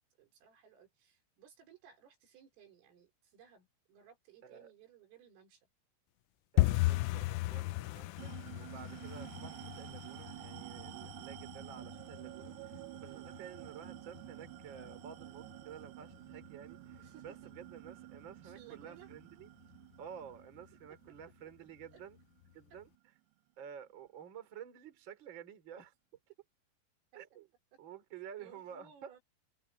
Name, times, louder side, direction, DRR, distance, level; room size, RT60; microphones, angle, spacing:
voice 1, 0.2-5.7 13.0-13.3 17.0-17.3 18.4-19.1 20.9-21.1 21.9-22.0 28.4-29.2, right 9 dB, 75° right, 7.2 m, -60 dB
voice 2, 6.5-19.5 20.0-22.2 22.5-22.9 23.6-25.9 27.1-27.5 27.8-29.1, right 8 dB, 30° right, 2.8 m, -51 dB
sound 1, 6.6-17.3 17.5-18.3 18.5-18.8 19.1-19.5 19.7-19.9 20.4-20.9 21.2-21.3 21.8-21.9, left 19 dB, 90° left, 3.3 m, -37 dB
sound 2, 8.2-23.0, right 22 dB, 90° right, 3.3 m, -51 dB
omnidirectional pair, 6.0 m